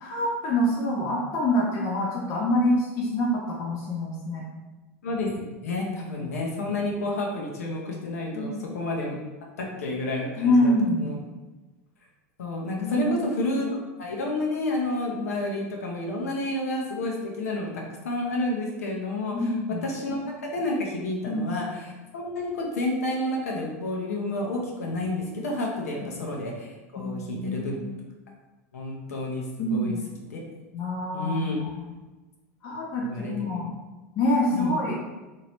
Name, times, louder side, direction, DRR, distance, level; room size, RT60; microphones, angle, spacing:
voice 1, 0.0-4.5 5.8-5.9 8.3-8.6 10.4-11.2 12.7-13.1 19.3-19.8 21.3-21.5 27.0-27.9 29.6-30.0 30.7-31.4 31.7-31.9 32.6-33.7 34.1-35.0, left 1 dB, 50° left, -4 dB, 0.7 m, -26 dB
voice 2, 5.0-9.2 9.6-11.2 12.4-17.7 18.0-19.5 19.8-27.8 28.7-29.4 29.7-30.0 30.3-30.4 31.1-31.6 33.0-33.3 34.5-34.8, left 2 dB, 80° left, -1 dB, 0.7 m, -30 dB
2.9 x 2.7 x 3.0 m, 1.2 s
hypercardioid pair, 90°, 8 cm